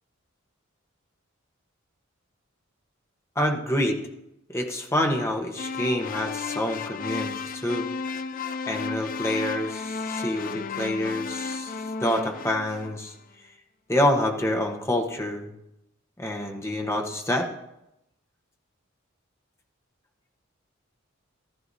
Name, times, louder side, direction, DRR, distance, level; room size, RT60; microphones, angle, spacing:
voice 1, 3.4-4.0 4.5-7.9 8.7-11.7 12.0-13.1 13.9-15.5 16.2-17.5, left 1 dB, 15° left, 3 dB, 1.1 m, -27 dB
sound 1, 5.6-13.1, left 5 dB, 40° left, 0.4 m, -33 dB
14.5 x 13.5 x 2.7 m, 0.88 s
head